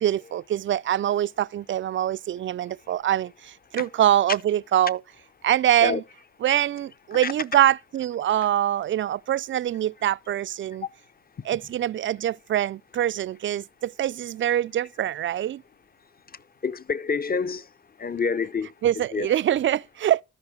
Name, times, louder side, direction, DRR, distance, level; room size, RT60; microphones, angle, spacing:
voice 1, 0.0-5.0 5.4-6.0 6.4-10.8 11.5-15.6 18.8-20.2, right 11 dB, 45° right, 0.4 m, -24 dB
voice 2, 16.6-17.7 18.0-19.3, left 5 dB, 30° left, 0.7 m, -28 dB
13.0 x 5.4 x 3.6 m
hypercardioid pair, 45°, 29 cm